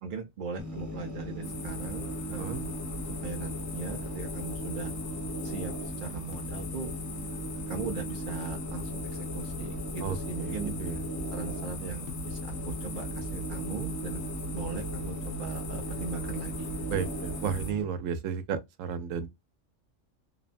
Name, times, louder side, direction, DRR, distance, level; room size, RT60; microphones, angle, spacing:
voice 1, 0.0-2.8 3.2-4.9 5.4-6.9 7.7-10.7 11.3-14.2 14.5-16.7, right 5 dB, 65° right, 0.5 m, -39 dB
sound 1, 0.6-17.8, equal, 20° right, 0.6 m, -38 dB
sound 2, 1.4-17.7, left 1 dB, 85° left, 1.0 m, -40 dB
voice 2, 10.4-11.0 16.9-19.3, right 7 dB, 90° right, 1.0 m, -33 dB
2.9 x 2.2 x 2.4 m
omnidirectional pair, 1.3 m